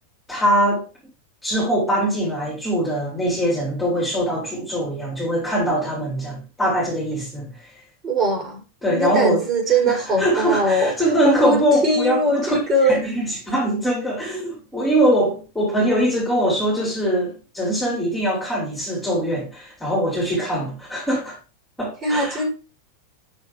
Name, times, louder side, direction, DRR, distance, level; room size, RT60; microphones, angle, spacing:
voice 1, 0.3-0.8 1.4-7.5 8.8-9.4 9.8-12.6 12.9-21.4 21.8-22.4, equal, 5° left, 3.8 m, -22 dB
voice 2, 8.0-8.6 8.9-10.9 11.2-12.9 22.0-22.5, right 1 dB, 25° right, 4.5 m, -21 dB
6.6 x 6.2 x 4.8 m
figure-of-eight pair, 90°, 0 cm